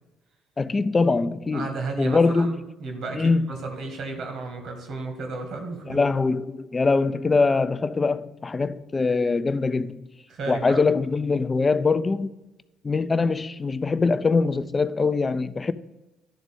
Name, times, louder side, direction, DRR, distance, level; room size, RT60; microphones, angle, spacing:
voice 1, 0.6-1.7 2.0-2.5 3.1-3.5 5.9-10.0 10.5-12.3 12.8-15.7, left 4 dB, 30° left, 0.4 m, -23 dB
voice 2, 1.5-6.0 10.3-10.8, right 3 dB, 55° right, 1.5 m, -33 dB
11.5 x 4.0 x 3.6 m
figure-of-eight pair, 50°, 0 cm